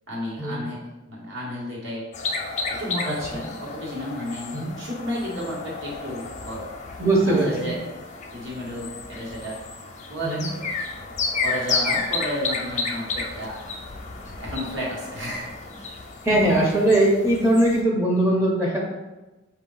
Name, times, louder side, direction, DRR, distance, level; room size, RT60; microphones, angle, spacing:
voice 1, 0.1-0.8 1.1-2.0 2.8-6.7 7.2-7.8 8.3-9.6 10.1-10.6 11.4-13.6 14.4-15.5 15.7-15.9, equal, 65° right, -5 dB, 1.5 m, -32 dB
sound 1, 2.1-17.8, left 4 dB, 35° left, 0.5 m, -32 dB
voice 2, 7.0-7.5 10.2-10.5 16.2-18.8, right 1 dB, 15° right, -2 dB, 0.8 m, -20 dB
4.7 x 2.8 x 3.9 m, 1.1 s
head